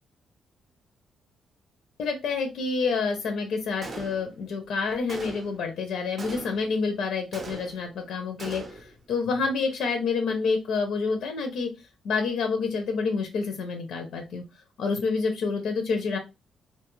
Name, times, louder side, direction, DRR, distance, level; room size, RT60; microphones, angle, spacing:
voice 1, 2.0-11.7 12.0-14.4 14.8-16.2, left 4 dB, 75° left, 5 dB, 0.5 m, -28 dB
Gunshot gunfire, 3.8-4.5 5.1-5.7 6.2-6.8 7.3-8.0 8.4-9.0, right 2 dB, 30° right, 0.5 m, -40 dB
2.5 x 2.3 x 3.0 m, 0.25 s
cardioid pair, 160°, 0 cm